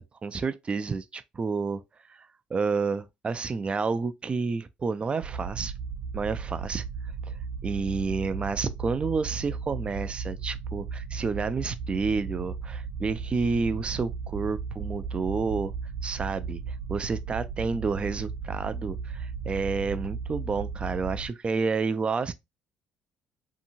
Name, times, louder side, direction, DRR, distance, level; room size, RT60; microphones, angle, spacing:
voice 1, 0.0-1.8 2.1-2.2 2.5-5.7 6.1-6.8 7.6-15.7 16.0-16.6 16.9-22.3, right 4 dB, 30° right, 0.3 m, -30 dB
sound 1, 5.2-21.3, right 5 dB, 70° right, 1.0 m, -35 dB
2.8 x 2.6 x 2.5 m
supercardioid pair, 80°, 4 cm